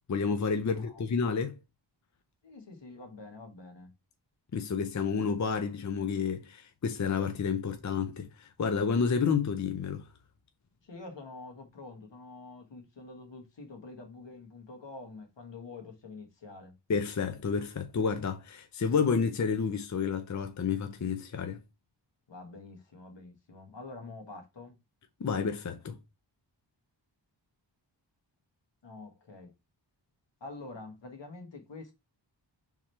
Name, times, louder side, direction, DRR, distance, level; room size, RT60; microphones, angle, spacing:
voice 1, 0.1-1.6 4.5-10.1 16.9-21.6 25.2-26.0, left 6 dB, 40° left, 0.6 m, -30 dB
voice 2, 2.4-3.9 10.8-16.7 22.3-24.7 28.8-29.5 30.4-31.9, left 3 dB, 70° left, 1.4 m, -46 dB
4.3 x 3.7 x 3.2 m
wide cardioid pair, 95°, 45 cm